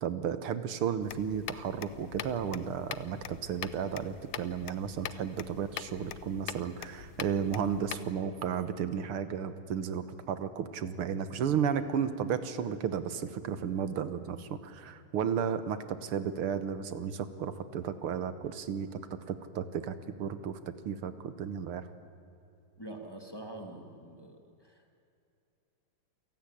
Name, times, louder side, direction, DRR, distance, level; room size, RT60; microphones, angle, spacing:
voice 1, 0.0-19.0 19.3-20.6 20.9-21.9, right 7 dB, 85° right, 12 dB, 2.1 m, -33 dB
sound 1, 1.0-8.1, left 11 dB, 90° left, 1.7 m, -43 dB
voice 2, 22.8-25.0, right 1 dB, 10° left, 3 dB, 2.4 m, -45 dB
28.0 x 17.0 x 10.0 m, 2.7 s
omnidirectional pair, 2.4 m